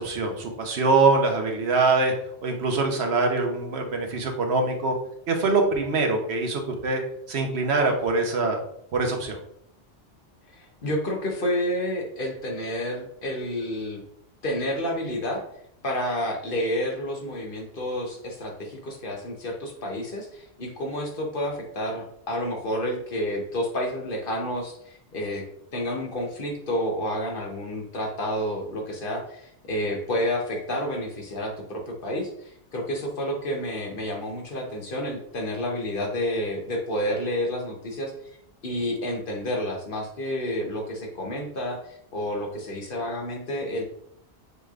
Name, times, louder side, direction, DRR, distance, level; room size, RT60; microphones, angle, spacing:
voice 1, 0.0-2.1 2.4-4.9 5.3-7.0 7.3-8.6 8.9-9.4, right 3 dB, 75° right, 3 dB, 1.1 m, -23 dB
voice 2, 10.5-14.0 14.4-15.4 15.8-25.4 25.7-38.1 38.6-43.8, equal, 55° left, 1 dB, 1.0 m, -30 dB
6.6 x 3.2 x 2.4 m, 0.70 s
omnidirectional pair, 1.1 m